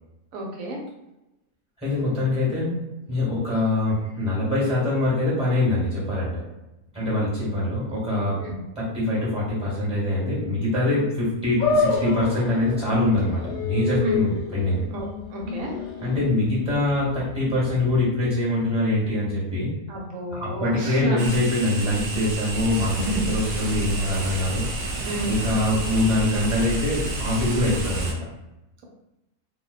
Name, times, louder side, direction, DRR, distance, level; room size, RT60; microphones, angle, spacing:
voice 1, 0.3-0.8 8.3-8.6 14.0-14.2 14.9-15.7 19.9-21.3 22.7-23.2 25.0-25.3, right 1 dB, 70° right, -1 dB, 1.0 m, -31 dB
voice 2, 1.8-2.7 3.1-6.4 6.9-8.4 8.8-14.9 16.0-19.7 20.3-24.6 25.3-28.2, left 2 dB, 5° right, -8 dB, 0.9 m, -24 dB
sound 1, 11.6-18.0, left 4 dB, 75° left, 1.0 m, -29 dB
sound 2, 21.2-28.1, right 2 dB, 90° right, 0.5 m, -30 dB
2.5 x 2.1 x 2.3 m, 0.96 s
omnidirectional pair, 1.6 m